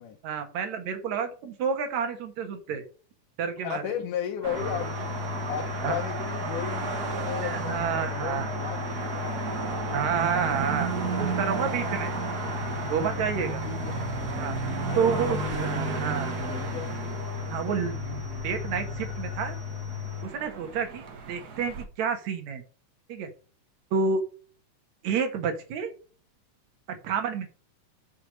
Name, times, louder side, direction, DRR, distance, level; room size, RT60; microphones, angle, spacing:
voice 1, 0.2-2.8 3.4-3.9 5.8-6.0 7.4-8.5 9.9-12.2 12.9-13.6 14.4-14.6 15.0-16.3 17.5-19.6 20.2-22.6 23.1-23.3 23.9-24.2 25.0-25.9 27.0-27.5, right 6 dB, 65° right, 6 dB, 2.6 m, -29 dB
voice 2, 3.6-5.2 5.5-9.5 13.6-14.1 14.5-14.6 14.8-16.2 16.5-16.9, left 9 dB, 85° left, 2 dB, 2.5 m, -35 dB
sound 1, 4.4-21.8, right 5 dB, 45° right, 1.3 m, -33 dB
sound 2, 4.5-20.2, left 11 dB, 20° left, 1.3 m, -36 dB
6.4 x 5.6 x 6.5 m, 0.39 s
omnidirectional pair, 3.5 m